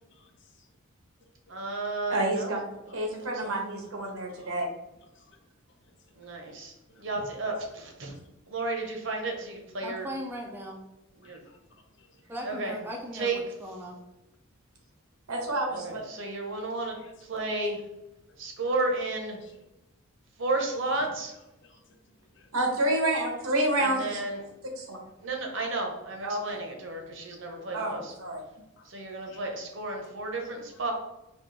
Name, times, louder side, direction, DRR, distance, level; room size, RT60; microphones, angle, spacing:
voice 1, 0.1-0.7 1.5-1.8 2.9-3.0 4.0-4.6 5.0-5.5 5.8-6.6 6.9-7.2 8.1-8.2 9.8-9.9 11.2-12.3 16.9-17.6 19.4-19.6 21.6-22.5 27.3-27.8 28.8-28.9 29.2-29.4 30.7-30.8, left 3 dB, 55° left, 3 dB, 0.7 m, -59 dB
voice 2, 1.5-2.5 2.9-3.0 3.4-3.5 6.1-8.1 8.5-10.1 11.2-11.4 12.4-12.7 13.1-13.4 15.7-17.0 17.3-17.8 18.4-19.4 20.4-21.3 23.8-24.4 25.2-28.1 28.8-30.9, right 2 dB, 60° right, 2 dB, 0.9 m, -32 dB
voice 3, 2.1-2.6 2.9-4.7 15.3-16.0 22.5-24.2 24.8-25.0 26.2-26.6 27.7-28.4, right 1 dB, 80° right, 1 dB, 1.1 m, -28 dB
voice 4, 9.8-10.8 12.3-14.0, equal, 10° right, -1 dB, 0.4 m, -38 dB
4.4 x 3.0 x 3.2 m, 0.94 s
head